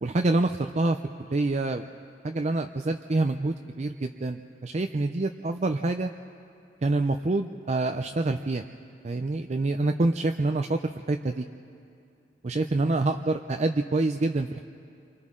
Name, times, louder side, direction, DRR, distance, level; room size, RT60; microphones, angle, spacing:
voice 1, 0.0-1.9 2.2-6.1 6.8-8.6 9.0-11.5 12.4-14.6, right 2 dB, 35° right, 6 dB, 0.5 m, -26 dB
28.5 x 24.5 x 3.7 m, 2.5 s
head